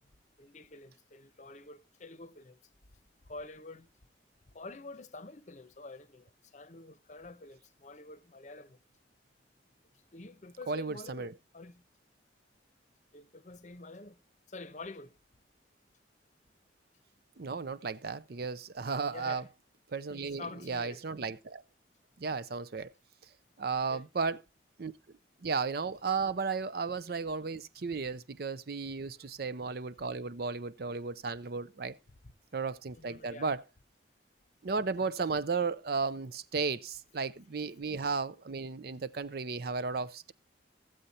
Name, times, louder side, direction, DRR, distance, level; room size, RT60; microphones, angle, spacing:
voice 1, 0.4-2.6 3.2-3.9 4.5-8.8 10.1-11.8 13.1-14.2 14.5-15.2 19.1-19.5 20.1-21.0 23.9-24.1 29.1-29.3 32.9-33.5, left 3 dB, 40° left, 0.8 m, -48 dB
voice 2, 10.7-11.3 17.4-19.4 19.9-21.6 22.2-22.9 23.6-24.4 24.8-24.9 25.4-32.0 32.5-33.6 34.6-40.3, right 4 dB, 55° right, 0.5 m, -34 dB
14.5 x 7.8 x 4.1 m
head